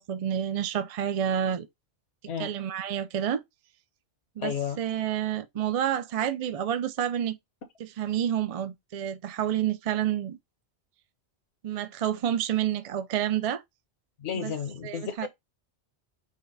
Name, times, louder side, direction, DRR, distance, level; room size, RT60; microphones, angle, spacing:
voice 1, 0.0-1.7 2.4-3.4 4.4-7.4 7.8-10.4 11.6-13.6 14.4-14.5 14.8-15.3, right 10 dB, 55° right, 0.4 m, -29 dB
voice 2, 4.4-4.8 14.2-15.3, left 8 dB, 70° left, 1.1 m, -32 dB
5.1 x 2.2 x 3.9 m
omnidirectional pair, 1.2 m